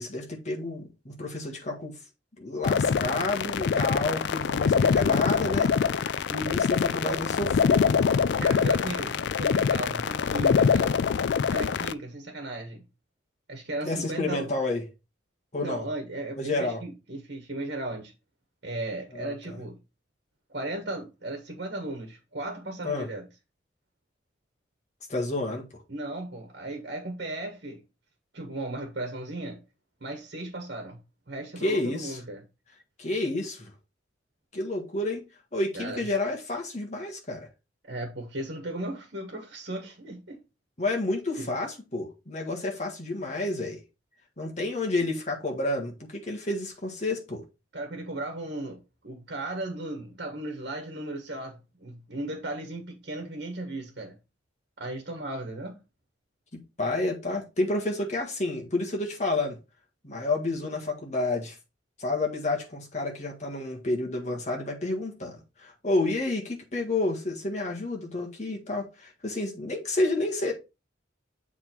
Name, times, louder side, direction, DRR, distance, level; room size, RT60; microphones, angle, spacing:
voice 1, 0.0-2.0 2.4-5.7 6.3-8.0 13.9-14.8 15.5-15.9 16.4-16.8 19.1-19.6 22.8-23.1 25.1-25.8 31.6-32.2 33.0-33.7 34.5-35.2 35.5-37.5 40.8-43.8 44.4-47.4 56.5-59.6 60.0-61.6 62.0-70.5, left 2 dB, 35° left, 1.7 m, -30 dB
sound 1, 2.6-11.9, left 6 dB, 60° left, 0.3 m, -24 dB
voice 2, 8.4-11.0 11.5-12.8 13.5-14.5 15.6-18.1 18.6-19.7 20.5-23.3 25.9-27.8 28.3-29.6 30.0-31.0 31.3-32.4 35.7-36.0 37.8-40.4 41.4-41.5 47.7-54.1 54.8-55.8, right 2 dB, 55° right, 1.4 m, -36 dB
7.3 x 3.6 x 4.5 m
head